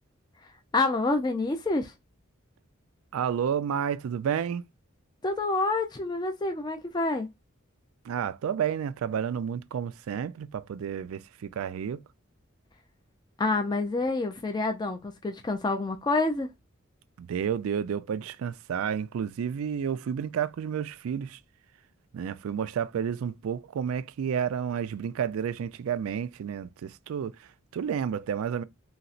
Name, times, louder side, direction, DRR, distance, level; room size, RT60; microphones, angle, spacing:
voice 1, 0.7-1.9 5.2-7.3 13.4-16.5, left 3 dB, 20° left, 0.3 m, -27 dB
voice 2, 3.1-4.6 8.0-12.0 17.2-21.4 22.1-28.6, right 8 dB, 85° right, 0.3 m, -31 dB
4.0 x 2.0 x 2.4 m
head